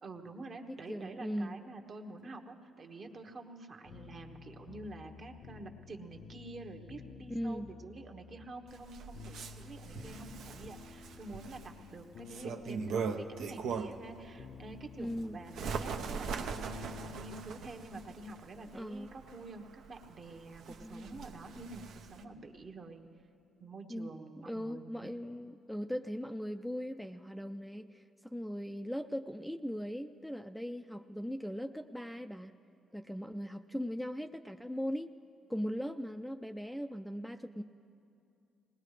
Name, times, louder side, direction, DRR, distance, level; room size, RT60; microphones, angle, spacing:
voice 1, 0.0-23.1 23.6-25.1, right 2 dB, 50° right, 4 dB, 1.1 m, -48 dB
voice 2, 0.7-1.5 7.3-7.7 15.0-15.4 18.7-19.1 20.8-21.1 23.9-24.1 24.5-32.5 32.9-35.1 35.5-37.6, equal, ahead, 6 dB, 0.4 m, -39 dB
sound 1, 3.9-18.0, left 6 dB, 75° left, 0.6 m, -52 dB
Bird, 8.7-14.1 14.6-22.2, right 5 dB, 80° right, 0.7 m, -41 dB
20.0 x 19.5 x 3.3 m, 2.5 s
cardioid pair, 90°, 0 cm